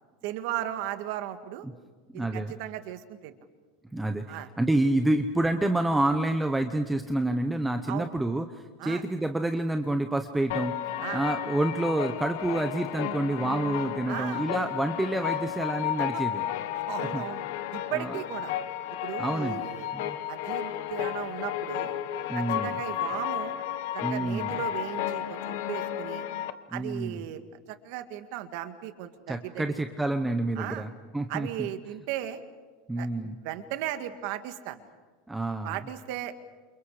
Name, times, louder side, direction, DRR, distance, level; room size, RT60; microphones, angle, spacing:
voice 1, 0.2-1.7 2.1-3.4 4.3-4.5 7.9-8.1 8.8-9.0 11.0-11.2 14.1-14.5 16.1-16.2 16.7-17.4 17.7-18.5 19.0-19.9 20.3-21.9 22.3-23.5 23.9-26.2 26.7-29.7 30.6-30.9 31.3-32.4 33.0-34.8 35.6-36.3, right 13 dB, 45° right, 9 dB, 2.0 m, -36 dB
voice 2, 2.1-2.5 3.9-10.8 11.1-16.5 17.1-17.2 17.9-18.2 19.2-19.7 19.9-20.2 22.3-22.8 24.0-24.6 26.7-27.2 29.3-31.7 32.9-33.4 35.3-35.7, right 1 dB, 5° right, 6 dB, 0.9 m, -28 dB
sound 1, 10.5-26.5, left 11 dB, 55° left, 1.2 m, -33 dB
29.5 x 28.5 x 5.0 m, 1.4 s
supercardioid pair, 180°, 0 cm